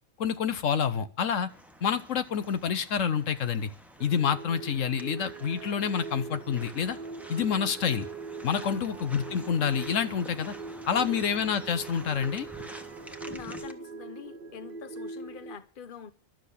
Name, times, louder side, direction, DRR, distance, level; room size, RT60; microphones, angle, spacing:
voice 1, 0.2-1.5 1.8-3.7 4.0-7.0 7.3-8.1 8.4-10.5 10.9-12.5, left 7 dB, 75° left, 1.2 m, -28 dB
sound 1, 1.5-13.7, equal, ahead, 1.1 m, -48 dB
sound 2, 4.0-15.6, right 4 dB, 50° right, 0.9 m, -41 dB
voice 2, 8.6-8.9 10.9-11.2 13.3-16.1, left 7 dB, 45° left, 1.1 m, -44 dB
12.0 x 7.7 x 8.3 m
omnidirectional pair, 1.3 m